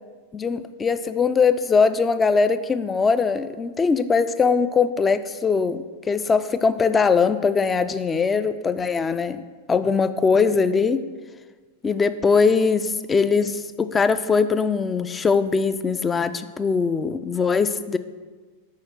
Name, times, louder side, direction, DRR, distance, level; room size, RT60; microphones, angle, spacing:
voice 1, 0.3-9.4 9.7-11.0 11.8-18.0, left 5 dB, 15° left, 12 dB, 0.3 m, -21 dB
5.7 x 4.8 x 6.2 m, 1.4 s
figure-of-eight pair, 90°, 0 cm